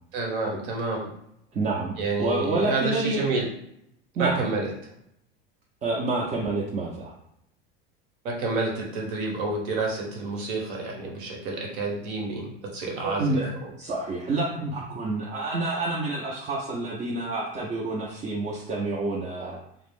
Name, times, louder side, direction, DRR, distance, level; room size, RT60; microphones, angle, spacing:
voice 1, 0.1-1.1 2.0-3.5 4.2-4.7 8.2-13.4, right 3 dB, 65° right, 0 dB, 1.0 m, -29 dB
voice 2, 1.5-3.2 4.2-4.4 5.8-7.1 13.0-13.5 13.8-19.6, right 2 dB, 25° right, -3 dB, 0.5 m, -28 dB
2.3 x 2.0 x 3.5 m, 0.76 s
supercardioid pair, 105°, 29 cm